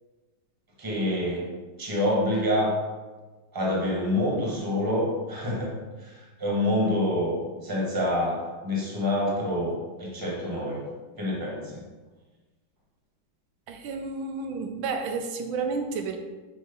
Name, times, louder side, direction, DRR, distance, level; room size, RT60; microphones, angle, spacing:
voice 1, 0.8-2.8 3.5-10.9 11.2-11.9, left 1 dB, 15° right, -3 dB, 1.1 m, -27 dB
voice 2, 13.7-16.2, right 4 dB, 85° right, 5 dB, 1.4 m, -31 dB
6.3 x 3.0 x 5.2 m, 1.3 s
omnidirectional pair, 2.1 m